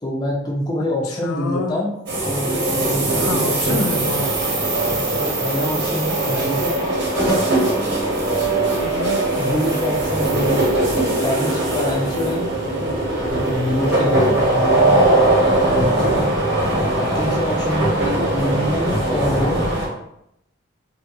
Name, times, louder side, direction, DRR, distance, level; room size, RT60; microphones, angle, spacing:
voice 1, 0.0-1.9 2.3-3.8 5.1-6.7 9.3-10.7 11.2-12.5 13.1-16.3 17.0-19.7, left 1 dB, 20° left, -2 dB, 0.5 m, -25 dB
voice 2, 1.2-1.7 3.2-4.5 8.7-9.3 14.0-14.4, left 3 dB, 90° left, 5 dB, 0.3 m, -27 dB
sound 1, 2.1-19.9, right 2 dB, 50° right, 0.7 m, -20 dB
2.6 x 2.4 x 2.5 m, 0.78 s
head